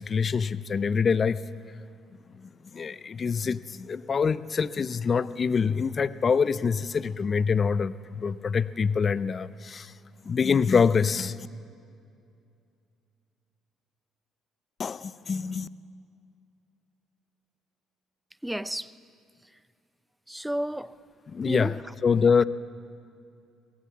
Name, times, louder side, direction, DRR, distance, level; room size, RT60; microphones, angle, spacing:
voice 1, 0.0-1.4 2.7-9.9 10.3-11.4 14.8-15.7 21.3-21.7 22.0-22.4, left 6 dB, 40° left, 16 dB, 0.7 m, -25 dB
voice 2, 18.4-18.9 20.3-20.9 21.4-21.8 22.4-22.5, right 1 dB, 5° right, 16 dB, 0.7 m, -31 dB
24.0 x 17.5 x 7.4 m, 2.4 s
hypercardioid pair, 55°, 0 cm